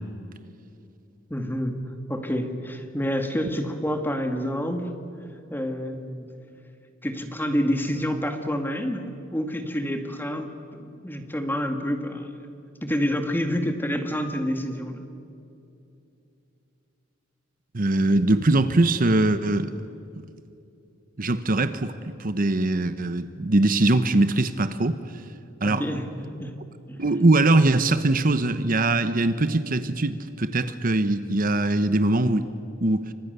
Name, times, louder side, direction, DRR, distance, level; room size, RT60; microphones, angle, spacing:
voice 1, 1.3-1.8 2.1-4.9 5.5-6.3 7.0-9.0 9.3-12.3 12.8-15.0 25.6-26.5 26.9-27.2, equal, 10° left, 6 dB, 2.1 m, -28 dB
voice 2, 17.7-19.7 20.1-20.2 21.2-25.0 25.6-25.9 27.0-32.5 32.8-33.1, right 2 dB, 45° right, 11 dB, 1.0 m, -22 dB
29.5 x 25.5 x 6.8 m, 2.8 s
head